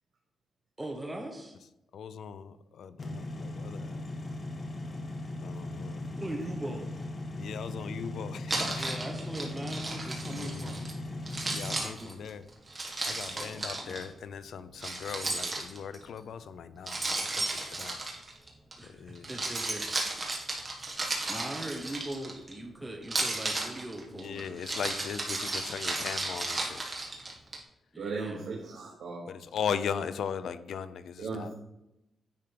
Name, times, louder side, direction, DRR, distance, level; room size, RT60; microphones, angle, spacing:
voice 1, 0.8-1.6 6.2-7.0 8.8-10.9 11.7-12.3 13.3-14.2 18.8-19.9 21.3-24.8 27.9-28.5, right 1 dB, 10° right, 1 dB, 0.9 m, -40 dB
voice 2, 1.9-4.0 5.4-6.0 7.4-8.8 10.3-10.7 11.5-12.4 13.0-17.0 17.3-18.0 19.0-19.3 24.2-26.8 29.3-31.5, left 7 dB, 75° left, 13 dB, 0.5 m, -38 dB
sound 1, 3.0-11.8, left 2 dB, 35° left, 1.1 m, -38 dB
Keys jangling, 8.5-10.9 11.3-14.0 14.8-16.0 16.9-18.7 19.2-22.5 23.0-27.6, right 2 dB, 30° right, 1.7 m, -34 dB
voice 3, 28.0-29.3 31.2-31.5, right 4 dB, 80° right, -2 dB, 1.2 m, -37 dB
10.5 x 3.7 x 5.1 m, 0.90 s
wide cardioid pair, 125°, 0 cm